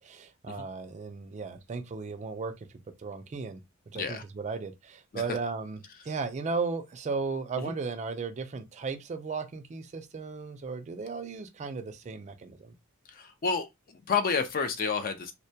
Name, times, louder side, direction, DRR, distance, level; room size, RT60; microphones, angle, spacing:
voice 1, 0.0-2.7 3.0-3.6 3.9-5.8 6.0-12.7, right 4 dB, 30° right, 0.3 m, -35 dB
voice 2, 13.1-15.3, left 5 dB, 40° left, 0.4 m, -30 dB
2.1 x 2.1 x 2.7 m
head